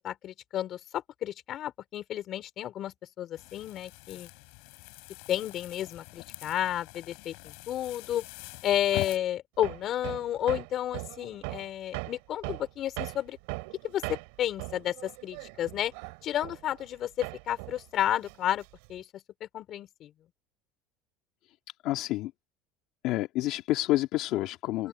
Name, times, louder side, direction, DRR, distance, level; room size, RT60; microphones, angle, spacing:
voice 1, 0.0-4.3 5.3-8.2 8.6-13.4 13.8-15.9 16.2-18.6 18.9-19.1 19.4-20.1 24.8-24.9, left 11 dB, 45° left, 4.7 m, -32 dB
sound 1, 3.4-9.2, left 33 dB, 75° left, 4.2 m, -44 dB
Hammer, 9.6-17.0 17.2-19.0, right 27 dB, 85° right, 2.8 m, -40 dB
voice 2, 21.8-22.3 23.0-24.9, left 16 dB, 60° left, 1.9 m, -28 dB
open air
cardioid pair, 135°, 0 cm